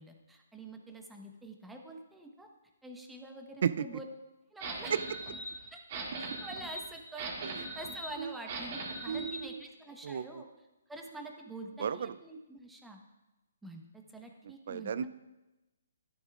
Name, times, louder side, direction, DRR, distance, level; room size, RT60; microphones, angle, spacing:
voice 1, 0.0-2.5 2.8-4.0 4.5-4.9 5.7-5.8 6.2-13.0 13.6-15.1, right 1 dB, 5° right, 2 dB, 1.1 m, -47 dB
sound 1, 4.6-9.4, right 2 dB, 40° right, 2.3 m, -40 dB
voice 2, 9.1-9.6 10.0-10.2 11.8-12.1 14.7-15.1, right 8 dB, 55° right, 15 dB, 0.4 m, -33 dB
14.0 x 11.5 x 2.5 m, 1.0 s
figure-of-eight pair, 140°, 0 cm